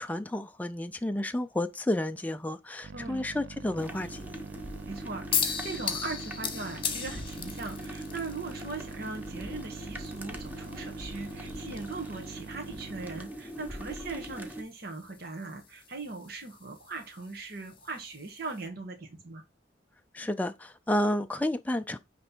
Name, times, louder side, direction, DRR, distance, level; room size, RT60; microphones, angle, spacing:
voice 1, 0.0-4.4 20.1-22.0, left 1 dB, 10° left, 0.3 m, -31 dB
sound 1, 2.8-13.3, right 5 dB, 90° right, 0.5 m, -45 dB
voice 2, 2.9-3.3 4.9-19.4, right 3 dB, 55° right, 1.5 m, -40 dB
sound 2, 3.8-14.6, equal, 10° right, 1.1 m, -42 dB
sound 3, 5.3-18.7, left 7 dB, 30° left, 1.3 m, -39 dB
9.5 x 3.4 x 4.4 m
head